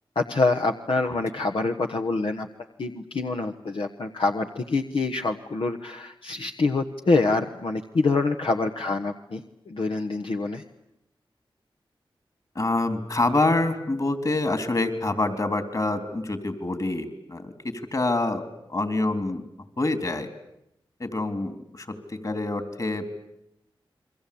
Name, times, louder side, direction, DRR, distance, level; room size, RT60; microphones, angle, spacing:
voice 1, 0.1-2.5 2.8-9.4 9.7-10.6, left 3 dB, 70° left, 3 dB, 1.3 m, -26 dB
voice 2, 12.6-18.4 18.7-19.4 19.8-20.3 21.0-23.1, left 2 dB, 40° left, 9 dB, 3.5 m, -26 dB
29.5 x 22.5 x 8.6 m, 0.82 s
cardioid pair, 60°, 9 cm